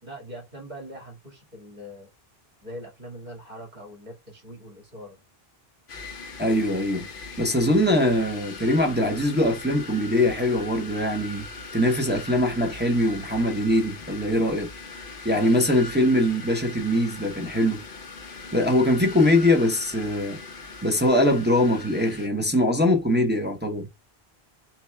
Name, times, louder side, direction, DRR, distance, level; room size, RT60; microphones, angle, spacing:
voice 1, 0.0-2.1 2.6-5.2, equal, 45° right, 2.3 m, -42 dB
sound 1, 5.9-22.3, left 3 dB, 60° left, 0.9 m, -40 dB
voice 2, 6.4-7.1 7.4-11.5 11.7-14.7 15.2-17.8 18.5-20.4 20.8-23.9, left 1 dB, 10° right, 0.8 m, -22 dB
5.7 x 2.3 x 3.3 m
omnidirectional pair, 1.1 m